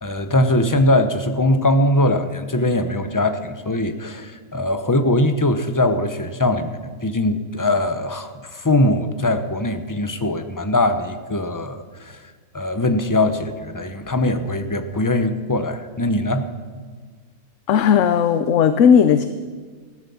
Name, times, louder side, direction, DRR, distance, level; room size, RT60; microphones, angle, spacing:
voice 1, 0.0-12.2 12.5-16.5, left 1 dB, 15° left, 9 dB, 0.8 m, -21 dB
voice 2, 17.7-19.3, left 7 dB, 70° left, 10 dB, 1.0 m, -15 dB
15.5 x 12.5 x 7.0 m, 1.5 s
omnidirectional pair, 1.4 m